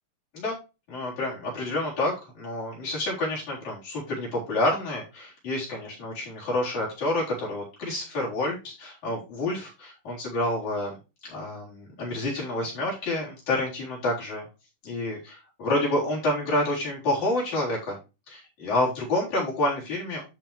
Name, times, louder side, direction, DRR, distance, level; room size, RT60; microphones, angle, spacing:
voice 1, 0.9-11.0 11.2-14.5 14.8-18.0 18.3-20.3, left 1 dB, 60° left, -6 dB, 5.2 m, -28 dB
12.0 x 4.5 x 3.2 m, 0.29 s
omnidirectional pair, 3.7 m